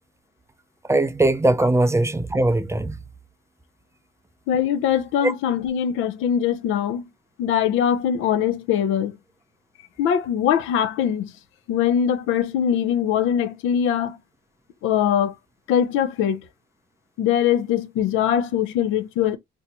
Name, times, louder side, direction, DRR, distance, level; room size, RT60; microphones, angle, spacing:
voice 1, 0.9-3.0 5.2-5.3, right 2 dB, 15° right, 0.4 m, -20 dB
voice 2, 4.5-7.1 7.4-9.2 10.0-11.3 11.7-14.2 14.8-15.3 15.7-16.5 17.2-19.4, left 9 dB, 90° left, 0.5 m, -22 dB
2.7 x 2.2 x 4.1 m
cardioid pair, 90°, 20 cm